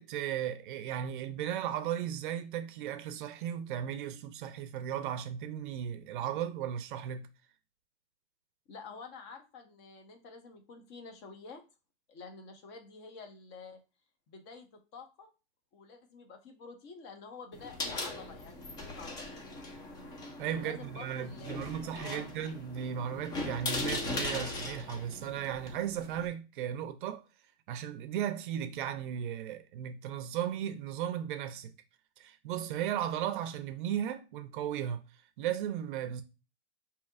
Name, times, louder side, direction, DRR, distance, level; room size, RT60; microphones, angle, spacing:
voice 1, 0.0-7.3 20.4-27.2 27.7-31.7 32.2-35.0 35.4-36.2, right 10 dB, 50° right, 0.5 m, -36 dB
voice 2, 8.7-11.6 12.1-13.8 14.3-15.3 15.7-19.9 20.5-22.4, left 4 dB, 35° left, 0.9 m, -49 dB
sound 1, 17.5-26.3, left 2 dB, 15° left, 0.4 m, -39 dB
5.1 x 2.8 x 2.4 m
hypercardioid pair, 130°, 33 cm